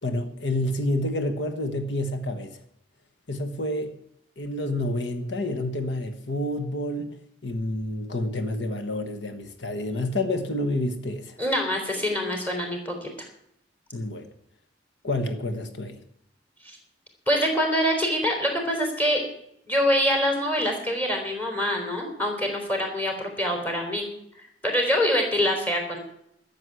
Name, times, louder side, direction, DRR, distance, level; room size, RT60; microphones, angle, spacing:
voice 1, 0.0-2.6 3.3-3.9 4.4-11.4 13.9-14.3 15.0-16.0, left 1 dB, 85° left, 1.4 m, -29 dB
voice 2, 11.4-13.1 16.6-16.8 17.3-19.2 19.7-24.0 24.6-26.0, equal, 10° left, 3.7 m, -25 dB
12.5 x 7.5 x 9.7 m
head